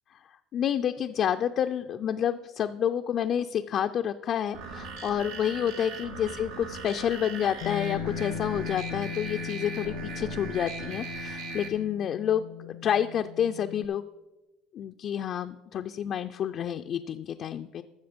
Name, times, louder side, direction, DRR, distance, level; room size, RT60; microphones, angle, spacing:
voice 1, 0.5-14.0 14.7-17.8, left 9 dB, 45° left, 6 dB, 0.4 m, -29 dB
sound 1, 4.5-11.7, right 4 dB, 90° right, 2.0 m, -39 dB
Bass guitar, 7.6-13.9, left 13 dB, 85° left, 0.7 m, -39 dB
13.5 x 6.8 x 5.1 m, 1.1 s
cardioid pair, 120°, 0 cm